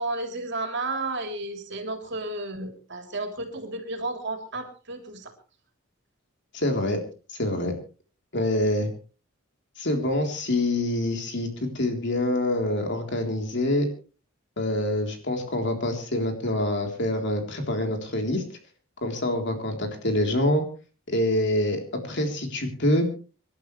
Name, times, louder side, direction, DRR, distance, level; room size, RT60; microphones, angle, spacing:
voice 1, 0.0-5.3, right 2 dB, 55° right, 4 dB, 3.4 m, -32 dB
voice 2, 6.5-7.0 7.4-7.7 8.3-8.9 9.8-13.9 14.6-18.4 19.0-20.6 21.1-23.1, left 1 dB, 55° left, 3 dB, 3.7 m, -26 dB
25.5 x 12.0 x 3.3 m, 0.36 s
head